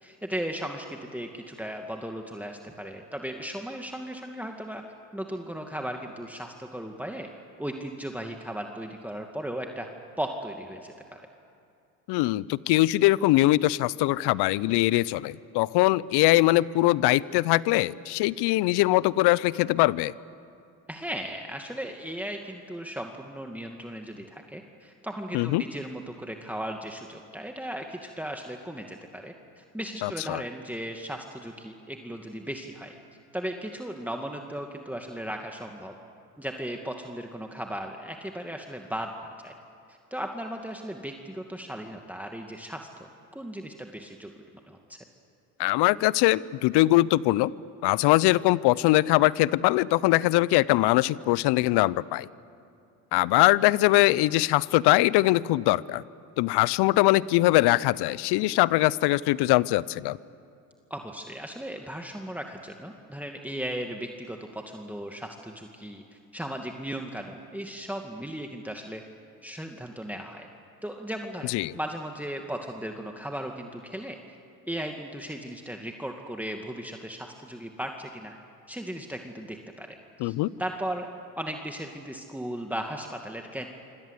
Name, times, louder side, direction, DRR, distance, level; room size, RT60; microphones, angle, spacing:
voice 1, 0.0-4.8 5.1-7.3 7.6-9.9 10.2-11.2 20.9-32.9 33.3-35.9 36.4-39.1 39.4-39.5 39.9-42.9 43.3-44.3 44.7-45.0 60.9-66.0 66.3-69.0 69.4-70.5 70.8-74.4 74.7-78.3 78.7-80.0 80.2-81.1 81.4-83.7, right 1 dB, 5° right, 3 dB, 2.4 m, -36 dB
voice 2, 12.1-20.1 25.3-25.6 30.0-30.4 45.6-47.5 47.8-52.3 53.1-56.0 56.4-60.2 71.5-71.7 80.2-80.5, left 18 dB, 65° left, 21 dB, 0.8 m, -22 dB
27.0 x 26.0 x 8.4 m, 2.5 s
hypercardioid pair, 60°, 43 cm